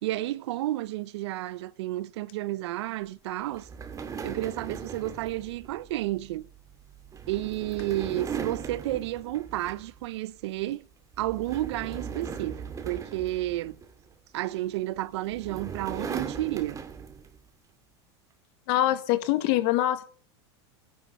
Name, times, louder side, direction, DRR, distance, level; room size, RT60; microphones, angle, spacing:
voice 1, 0.0-3.7 4.2-6.5 7.3-10.9 11.2-13.8 14.3-16.8, right 15 dB, 75° right, 0.8 m, -31 dB
sound 1, 3.5-10.1 10.4-10.7 11.1-14.1 15.0-17.4, right 6 dB, 25° right, 2.3 m, -39 dB
voice 2, 18.7-20.1, left 14 dB, 60° left, 1.9 m, -24 dB
19.5 x 10.5 x 5.5 m
supercardioid pair, 120°, 14 cm